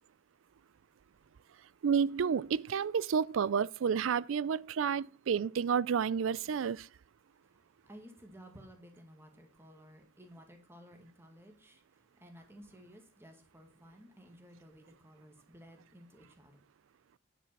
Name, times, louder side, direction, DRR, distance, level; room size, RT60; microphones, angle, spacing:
voice 1, 1.8-6.9, right 7 dB, 80° right, 0.4 m, -30 dB
voice 2, 7.4-16.7, equal, 15° right, 2.0 m, -56 dB
10.0 x 6.1 x 5.9 m
head